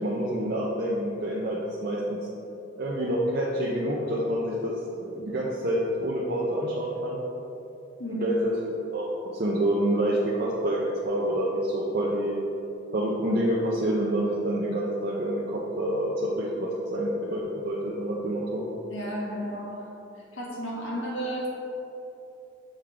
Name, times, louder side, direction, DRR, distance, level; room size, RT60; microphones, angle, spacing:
voice 1, 0.0-2.2 2.8-4.7 5.1-7.2 8.2-8.5 8.9-9.1 9.3-12.4 12.9-18.6, right 1 dB, 50° right, -5 dB, 0.6 m, -27 dB
voice 2, 18.9-19.9 20.3-21.5, equal, 80° left, -3 dB, 1.3 m, -33 dB
6.5 x 4.5 x 3.7 m, 2.8 s
head